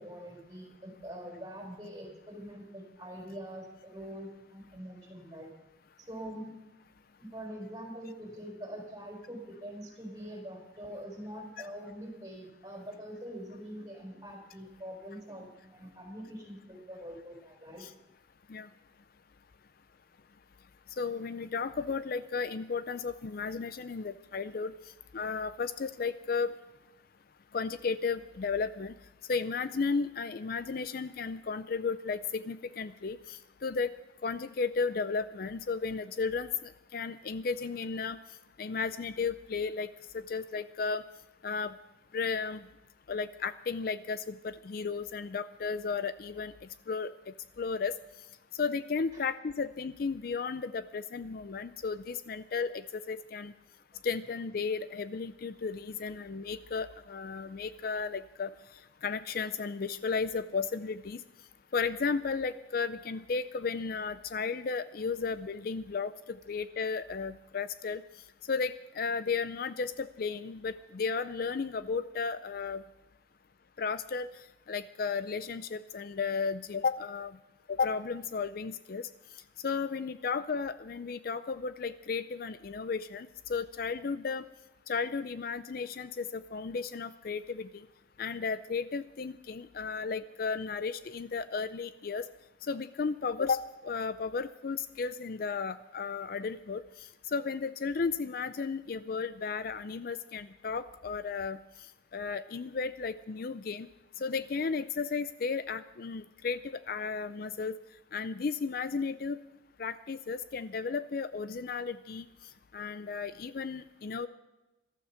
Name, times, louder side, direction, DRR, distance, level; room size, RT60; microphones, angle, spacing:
voice 1, 0.0-5.5 6.0-6.5 7.2-17.9 49.1-49.2, equal, 20° right, 1 dB, 4.2 m, -44 dB
voice 2, 21.0-24.7 25.1-26.5 27.5-28.9 29.3-33.9 34.2-38.2 38.6-39.9 40.1-41.0 41.4-41.7 42.1-42.6 43.1-46.5 46.9-47.1 47.6-48.0 48.6-53.5 54.0-58.5 59.0-61.2 61.7-68.0 68.5-72.8 73.8-74.3 74.7-77.3 77.7-79.1 79.6-84.4 84.9-87.8 88.2-92.2 92.7-96.8 97.3-101.6 102.1-103.9 104.2-107.7 108.1-109.4 109.8-112.3 112.7-114.3, left 5 dB, 50° left, 14 dB, 0.4 m, -34 dB
15.0 x 13.0 x 5.7 m, 1.0 s
head